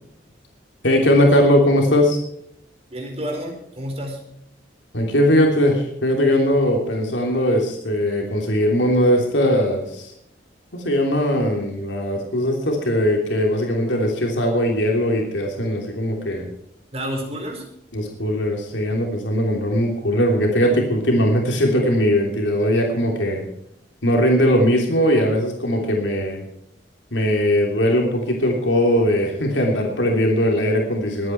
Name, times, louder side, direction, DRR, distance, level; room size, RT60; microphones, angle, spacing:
voice 1, 0.8-2.2 4.9-10.1 10.7-16.5 17.9-23.4 24.0-26.4 27.1-31.3, equal, 85° left, 1 dB, 3.1 m, -19 dB
voice 2, 2.9-4.2 16.9-17.7, equal, 35° right, 2 dB, 4.2 m, -30 dB
22.0 x 9.6 x 4.6 m, 0.73 s
head